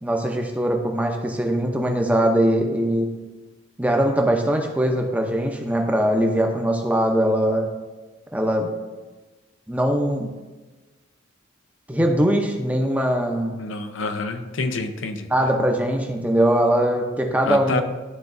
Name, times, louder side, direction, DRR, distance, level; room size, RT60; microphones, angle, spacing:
voice 1, 0.0-3.1 3.8-7.7 8.3-8.7 9.7-10.3 11.9-13.6 15.3-17.8, right 1 dB, 5° right, 2 dB, 0.6 m, -21 dB
voice 2, 13.5-15.3 17.4-17.8, left 3 dB, 75° left, 8 dB, 0.6 m, -27 dB
11.5 x 3.9 x 2.6 m, 1.2 s
head